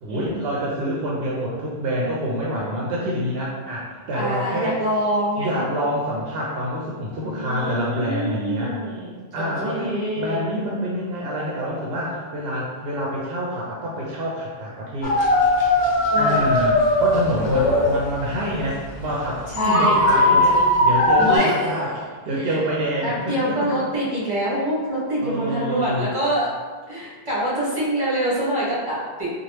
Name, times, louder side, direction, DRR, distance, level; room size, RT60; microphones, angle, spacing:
voice 1, 0.0-4.8 5.4-8.8 9.3-15.1 16.1-21.9 22.3-23.8 25.2-26.1, equal, 75° right, -4 dB, 0.8 m, -27 dB
voice 2, 4.1-5.9 7.2-10.5 16.1-16.5 19.5-20.9 21.2-21.6 22.4-22.6 23.0-26.5 26.9-29.3, right 1 dB, 25° right, -9 dB, 1.2 m, -26 dB
sound 1, 15.0-19.2 19.5-21.4, left 1 dB, 50° left, 0.5 m, -19 dB
2.9 x 2.4 x 3.1 m, 1.4 s
omnidirectional pair, 1.0 m